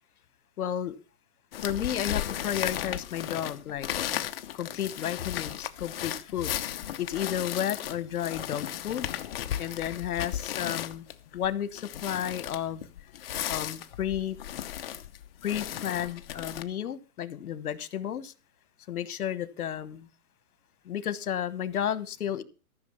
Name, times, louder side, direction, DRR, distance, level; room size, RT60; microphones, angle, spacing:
voice 1, 0.6-1.0 1.6-3.9 4.5-6.6 7.0-9.1 9.6-11.0 11.3-12.8 13.5-14.4 15.4-18.3 18.9-20.1 20.8-22.4, left 10 dB, 70° left, 1.4 m, -32 dB
sound 1, 1.5-16.6, left 11 dB, 40° left, 0.9 m, -35 dB
14.0 x 6.4 x 6.9 m
hypercardioid pair, 160°, 45 cm